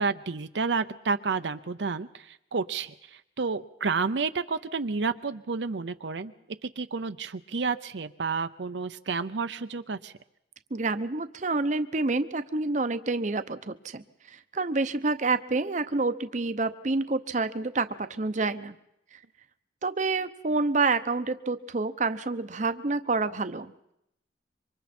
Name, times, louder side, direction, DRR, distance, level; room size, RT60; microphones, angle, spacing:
voice 1, 0.0-2.9 3.4-6.3 6.6-10.1, right 4 dB, 80° right, 10 dB, 0.7 m, -30 dB
voice 2, 10.7-18.8 19.1-19.2 19.8-23.9, right 3 dB, 45° right, 11 dB, 0.7 m, -28 dB
27.0 x 24.5 x 4.4 m, 0.79 s
head